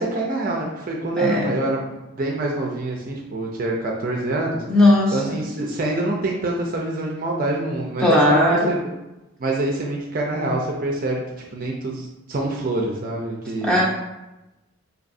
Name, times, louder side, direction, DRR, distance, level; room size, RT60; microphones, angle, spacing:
voice 1, 0.0-4.6 5.1-8.9 9.4-11.2 11.5-13.8, right 2 dB, 40° right, -1 dB, 0.4 m, -26 dB
voice 2, 4.7-5.2 8.0-8.6 13.6-13.8, left 1 dB, 5° left, -5 dB, 0.7 m, -16 dB
5.1 x 2.6 x 2.5 m, 1.0 s
head